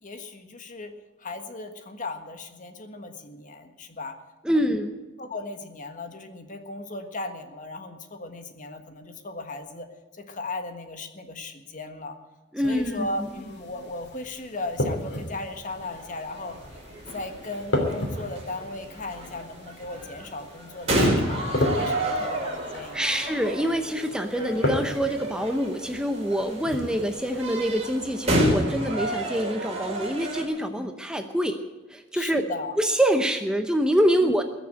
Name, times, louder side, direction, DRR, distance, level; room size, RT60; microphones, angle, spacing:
voice 1, 0.0-0.9 1.2-4.2 4.5-4.6 5.2-9.9 10.2-12.2 12.6-16.6 17.1-23.1 30.8-30.9 32.1-32.8 34.2-34.4, left 2 dB, 40° left, 7 dB, 1.5 m, -37 dB
voice 2, 4.4-4.9 12.5-13.3 22.9-31.6 31.9-32.4 32.8-34.4, equal, 5° right, 6 dB, 0.7 m, -25 dB
sound 1, 12.6-28.0, left 1 dB, 60° left, 3.1 m, -34 dB
sound 2, 15.7-30.4, right 1 dB, 35° right, 4.4 m, -30 dB
21.0 x 7.0 x 8.9 m, 1.2 s
head